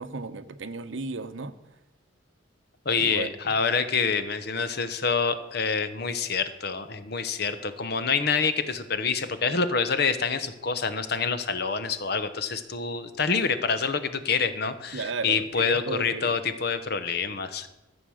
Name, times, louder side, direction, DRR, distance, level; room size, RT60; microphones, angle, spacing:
voice 1, 0.0-1.5 3.0-3.3 14.9-16.3, right 4 dB, 75° right, 12 dB, 0.8 m, -34 dB
voice 2, 2.8-17.7, left 5 dB, 55° left, 11 dB, 0.9 m, -27 dB
13.5 x 7.2 x 6.4 m, 0.96 s
head